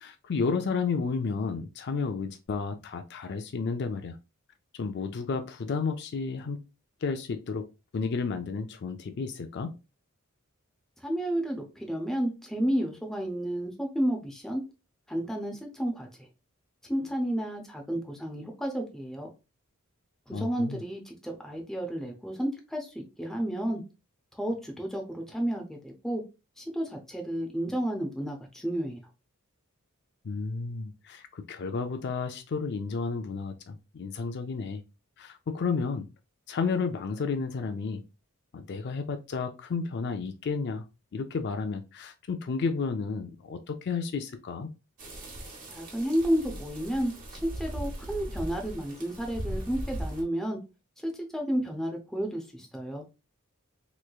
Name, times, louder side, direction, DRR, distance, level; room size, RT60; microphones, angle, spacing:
voice 1, 0.0-4.2 4.7-6.7 7.0-7.7 7.9-9.7 20.3-20.8 30.2-34.8 35.2-36.1 36.5-38.0 38.5-40.8 41.1-44.7, left 4 dB, 50° left, 0.4 m, -32 dB
voice 2, 11.0-14.6 15.1-16.1 16.9-19.3 20.3-23.8 24.3-26.2 26.6-29.0 45.7-50.6 51.0-53.0, right 1 dB, ahead, 0.6 m, -31 dB
sound 1, 45.0-50.2, right 1 dB, 40° right, 1.1 m, -38 dB
3.4 x 3.1 x 2.3 m
head